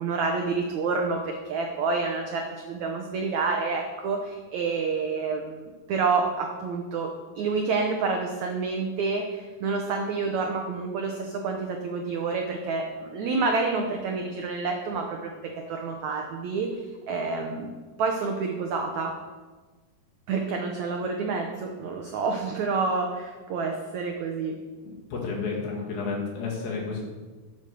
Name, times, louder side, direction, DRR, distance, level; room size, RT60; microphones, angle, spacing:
voice 1, 0.0-19.2 20.3-24.6, right 4 dB, 90° right, 2 dB, 1.6 m, -28 dB
voice 2, 24.8-27.0, left 4 dB, 65° left, -2 dB, 3.8 m, -31 dB
8.9 x 8.0 x 6.8 m, 1.3 s
omnidirectional pair, 4.6 m